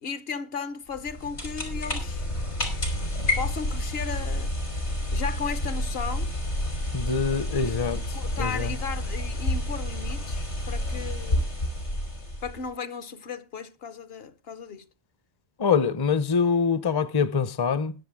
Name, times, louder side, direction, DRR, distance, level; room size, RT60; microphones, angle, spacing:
voice 1, 0.0-2.3 3.4-4.5 5.1-6.3 7.4-11.5 12.4-14.8, left 6 dB, 65° left, 1.1 m, -35 dB
sound 1, 0.9-12.7, left 1 dB, 80° left, 3.8 m, -29 dB
voice 2, 6.9-8.0 8.4-8.7 15.6-17.9, left 5 dB, 30° left, 0.5 m, -24 dB
20.5 x 7.3 x 3.5 m
omnidirectional pair, 1.1 m